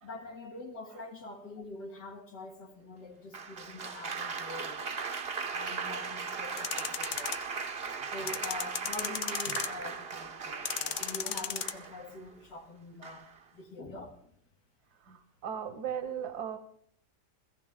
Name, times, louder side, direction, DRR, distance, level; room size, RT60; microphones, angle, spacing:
voice 1, 0.0-4.9 5.5-7.5 8.1-14.3, left 2 dB, 75° left, 2.6 m, -45 dB
Applause, 3.3-12.2 13.0-13.4, right 5 dB, 40° right, 1.0 m, -38 dB
sound 1, 6.6-7.4 8.3-9.9 10.7-11.7, left 8 dB, 55° left, 0.9 m, -34 dB
voice 2, 15.0-16.6, right 8 dB, 70° right, 1.9 m, -37 dB
18.0 x 16.0 x 3.7 m
omnidirectional pair, 1.8 m